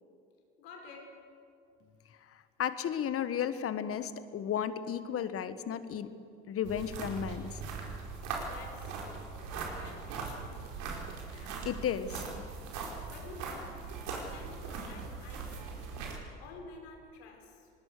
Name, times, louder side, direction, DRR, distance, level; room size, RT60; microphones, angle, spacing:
voice 1, 0.6-1.3 8.4-10.7 13.1-16.0 16.4-17.7, left 3 dB, 80° left, 3 dB, 4.2 m, -51 dB
voice 2, 2.3-6.1 6.5-7.6 11.3-12.3, left 9 dB, 45° left, 13 dB, 1.5 m, -34 dB
sound 1, 6.6-16.2, right 4 dB, 65° right, 4.8 m, -40 dB
24.5 x 20.0 x 6.7 m, 2.4 s
hypercardioid pair, 75°, 31 cm